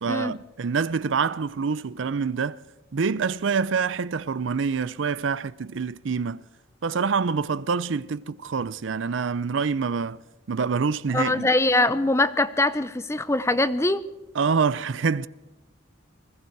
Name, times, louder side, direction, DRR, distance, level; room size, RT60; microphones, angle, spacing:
voice 1, 0.0-2.6 2.9-6.4 6.8-10.2 10.5-11.5 14.3-15.3, right 5 dB, 80° right, 0.5 m, -26 dB
voice 2, 11.1-14.0, left 2 dB, 15° left, 0.6 m, -22 dB
21.0 x 14.5 x 4.6 m
head